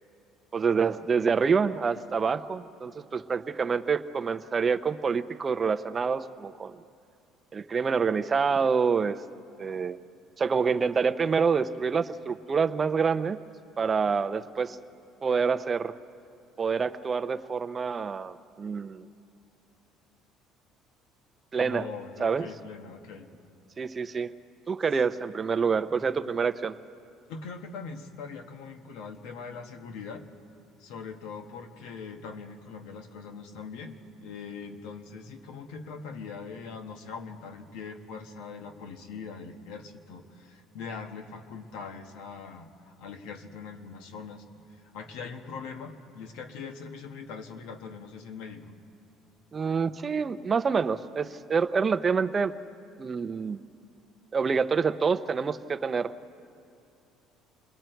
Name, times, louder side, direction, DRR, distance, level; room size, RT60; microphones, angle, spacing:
voice 1, 0.5-6.7 7.5-9.2 9.6-10.0 10.4-13.4 13.8-14.8 15.2-15.9 16.6-19.1 21.5-21.9 22.2-22.5 23.8-24.3 24.7-26.7 49.5-52.5 53.0-53.6 54.3-56.1, right 5 dB, 30° right, 11 dB, 0.7 m, -27 dB
voice 2, 21.5-23.3 26.2-26.3 27.3-30.3 30.8-48.8, left 5 dB, 85° left, 5 dB, 1.6 m, -42 dB
28.0 x 21.5 x 4.6 m, 2.5 s
cardioid pair, 120°, 0 cm